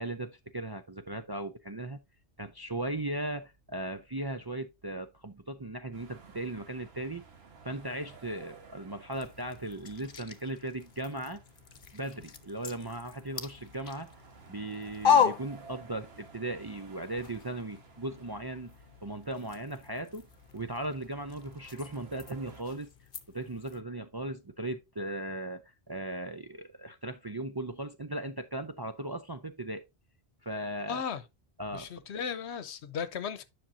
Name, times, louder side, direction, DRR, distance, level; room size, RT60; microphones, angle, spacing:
voice 1, 0.0-2.0 2.4-7.2 7.6-11.4 11.9-14.1 14.5-18.7 19.0-20.3 20.5-22.9 23.3-29.8 30.4-31.0 31.6-31.9, right 1 dB, 30° right, 0.4 m, -37 dB
sound 1, 5.9-22.6, right 5 dB, 65° right, 1.5 m, -55 dB
sound 2, 9.1-16.3 16.6-23.8, left 7 dB, 55° left, 1.0 m, -35 dB
voice 2, 30.9-31.2 31.7-33.4, left 7 dB, 80° left, 1.1 m, -36 dB
10.0 x 6.0 x 2.6 m
omnidirectional pair, 1.1 m